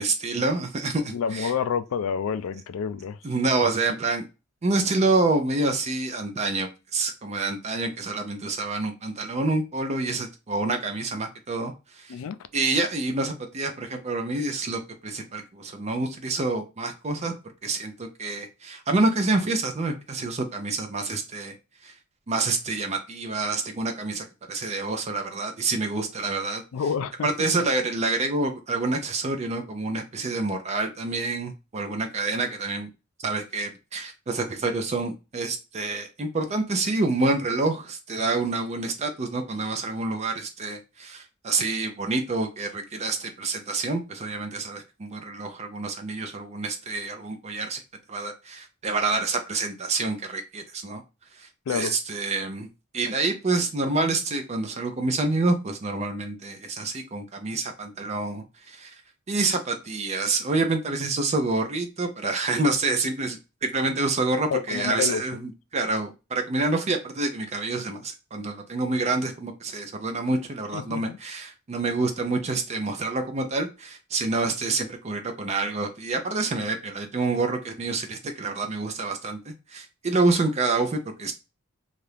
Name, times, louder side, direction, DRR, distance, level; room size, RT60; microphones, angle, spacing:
voice 1, 0.0-1.5 3.2-4.2 4.6-12.2 12.5-17.3 17.6-21.5 21.8-21.9 22.3-26.6 27.2-32.9 33.2-47.8 48.1-51.0 51.3-52.7 52.9-59.0 59.3-65.4 65.7-81.3, right 3 dB, 30° right, 0.4 m, -27 dB
voice 2, 1.1-3.2 12.1-12.4 26.7-27.5 51.7-52.0 64.5-65.2 70.7-71.2, left 7 dB, 75° left, 0.3 m, -28 dB
2.8 x 2.4 x 3.2 m
head